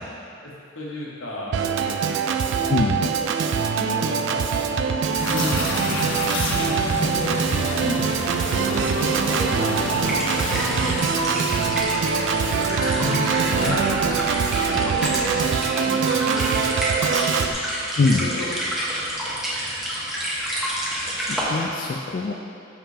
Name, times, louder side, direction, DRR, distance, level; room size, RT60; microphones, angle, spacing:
voice 1, 0.4-2.1 2.9-3.3 3.8-7.4 7.8-8.0 8.5-11.4 11.8-13.1 13.4-17.5 18.0-19.4, left 1 dB, 90° left, -5 dB, 1.2 m, -35 dB
Organ, 1.5-17.5, right 6 dB, 65° right, 0.3 m, -23 dB
voice 2, 2.7-3.0 12.8-13.4 13.6-13.8 18.0-18.2 21.3-22.3, left 3 dB, 45° left, 0 dB, 0.3 m, -24 dB
sound 1, 5.1-11.8, left 2 dB, 65° left, 0.7 m, -29 dB
sound 2, 9.9-21.4, equal, 5° right, 0.9 m, -29 dB
6.5 x 5.6 x 2.7 m, 2.6 s
head